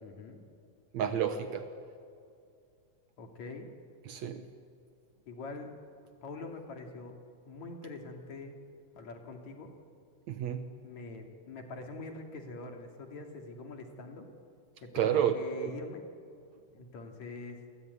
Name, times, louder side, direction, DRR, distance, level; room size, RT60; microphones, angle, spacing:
voice 1, 0.0-0.4 3.2-3.7 5.3-5.7 6.2-7.1 7.5-8.6 9.0-9.7 10.8-14.3 14.8-16.0 16.7-17.6, left 3 dB, 65° left, 3 dB, 3.8 m, -44 dB
voice 2, 0.9-1.7 4.1-4.4 10.3-10.7 14.9-15.7, right 9 dB, 70° right, 8 dB, 2.3 m, -30 dB
29.5 x 21.0 x 9.6 m, 2.4 s
omnidirectional pair, 3.5 m